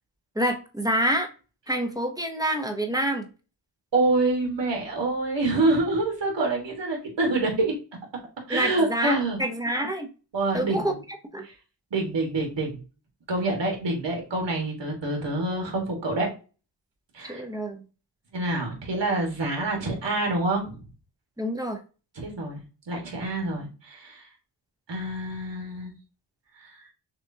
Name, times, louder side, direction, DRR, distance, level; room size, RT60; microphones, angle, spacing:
voice 1, 0.4-1.3 1.7-3.3 8.5-10.1 10.5-10.9 11.3-11.4 17.3-17.8 21.4-21.8, right 1 dB, 10° right, 3 dB, 0.7 m, -27 dB
voice 2, 3.9-7.7 8.5-9.4 10.3-10.9 11.4-11.5 11.9-12.8 13.3-16.3 17.1-17.4 18.3-20.8 22.1-22.6 22.9-24.2 24.9-25.9 26.6-26.7, right 2 dB, 85° right, 1 dB, 1.6 m, -26 dB
6.2 x 2.5 x 2.7 m, 0.33 s
wide cardioid pair, 125°, 42 cm